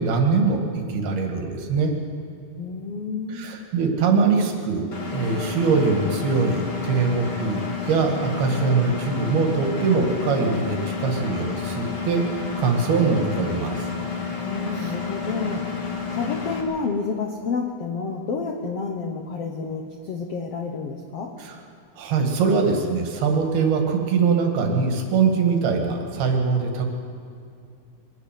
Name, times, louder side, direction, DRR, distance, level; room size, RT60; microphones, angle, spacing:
voice 1, 0.0-1.9 3.3-4.9 5.1-13.9 14.8-14.9 21.4-21.6 22.0-26.9, right 4 dB, 85° right, 3 dB, 4.0 m, -22 dB
voice 2, 2.6-3.5 14.4-15.6 16.1-21.3, left 4 dB, 70° left, 2 dB, 1.4 m, -29 dB
Engine, 4.9-16.6, left 5 dB, 35° left, 2.1 m, -30 dB
23.5 x 12.0 x 9.2 m, 2.3 s
omnidirectional pair, 4.4 m